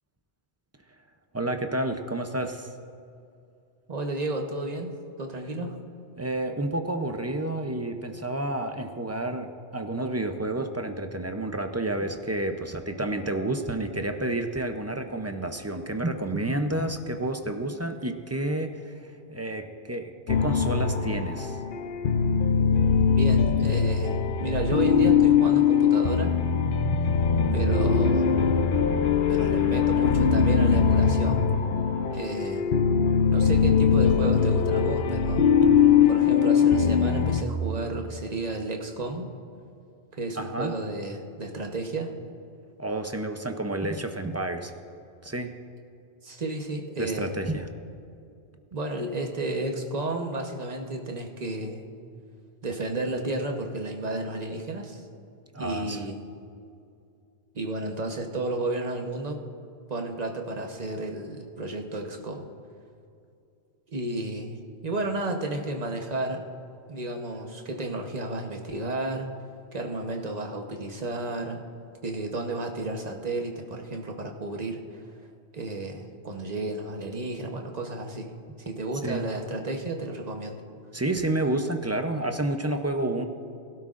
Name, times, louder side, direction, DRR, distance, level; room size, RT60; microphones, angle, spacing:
voice 1, 1.3-2.7 6.2-21.6 37.7-37.8 40.4-40.8 42.8-44.7 45.2-45.6 47.0-47.7 55.5-56.0 79.0-79.3 80.9-83.3, right 1 dB, 20° right, 6 dB, 0.4 m, -30 dB
voice 2, 3.9-4.9 5.2-5.8 22.9-26.3 27.5-28.3 29.3-31.5 32.1-32.7 33.3-35.5 36.1-39.3 40.2-42.1 46.2-47.3 48.7-51.8 52.6-55.0 55.6-56.2 57.5-59.4 59.9-62.4 63.9-64.6 64.8-66.4 66.9-69.3 69.7-71.6 72.0-75.0 75.5-78.3 78.6-80.6, right 2 dB, 40° right, 3 dB, 1.1 m, -32 dB
sound 1, 20.3-37.4, left 6 dB, 55° left, 0.7 m, -21 dB
21.5 x 12.0 x 2.5 m, 2.5 s
omnidirectional pair, 1.2 m